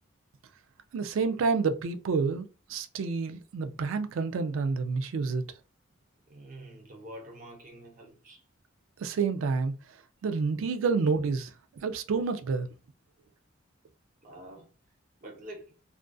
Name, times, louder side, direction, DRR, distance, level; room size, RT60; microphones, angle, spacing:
voice 1, 0.9-5.4 9.0-9.7 10.2-11.5 11.8-12.7, right 4 dB, 85° right, 0.3 m, -29 dB
voice 2, 6.3-8.4 14.2-14.7 15.2-15.7, right 1 dB, 40° right, 0.6 m, -46 dB
2.4 x 2.4 x 2.2 m
head